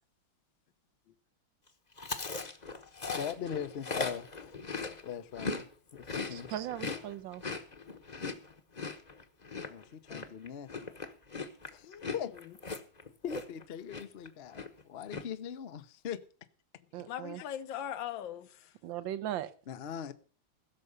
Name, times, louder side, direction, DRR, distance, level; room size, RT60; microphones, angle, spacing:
Chewing mastication, 2.0-5.6 5.9-13.6 13.9-14.3 14.5-15.2, left 4 dB, 30° left, 0.9 m, -38 dB
voice 1, 3.2-4.6 5.0-5.7 5.9-6.5 9.7-10.7 11.7-12.3 13.2-16.2 17.4-17.5 19.7-20.1, left 8 dB, 55° left, 0.6 m, -40 dB
voice 2, 6.3-7.4 16.9-17.4 18.8-19.5, right 12 dB, 75° right, 1.6 m, -38 dB
voice 3, 11.8-12.5 17.0-18.7, left 10 dB, 75° left, 1.5 m, -41 dB
16.0 x 6.8 x 6.6 m
omnidirectional pair, 2.2 m